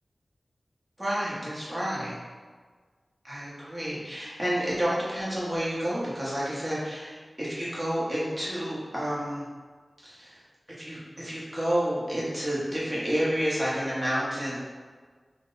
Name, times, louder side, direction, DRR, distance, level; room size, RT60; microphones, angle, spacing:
voice 1, 1.0-2.1 3.2-9.4 10.0-10.4 10.8-14.6, equal, 15° right, -8 dB, 1.0 m, -30 dB
2.8 x 2.1 x 3.7 m, 1.5 s
wide cardioid pair, 85°, 0 cm